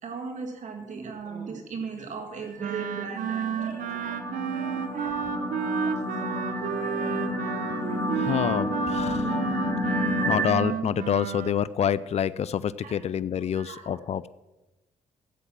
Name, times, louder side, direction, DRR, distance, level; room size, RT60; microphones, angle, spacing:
voice 1, 0.0-8.6 9.2-9.4 10.2-10.5 12.8-13.0 13.5-14.0, right 5 dB, 65° right, 4 dB, 1.9 m, -40 dB
sound 1, 2.5-10.5, left 1 dB, 15° left, 3.0 m, -30 dB
Wind instrument woodwind instrument, 2.6-11.6, right 8 dB, 85° right, 1.1 m, -32 dB
voice 2, 8.1-9.4 9.9-14.3, left 8 dB, 55° left, 16 dB, 0.5 m, -27 dB
13.5 x 8.2 x 7.5 m, 1.0 s
cardioid pair, 70°, 14 cm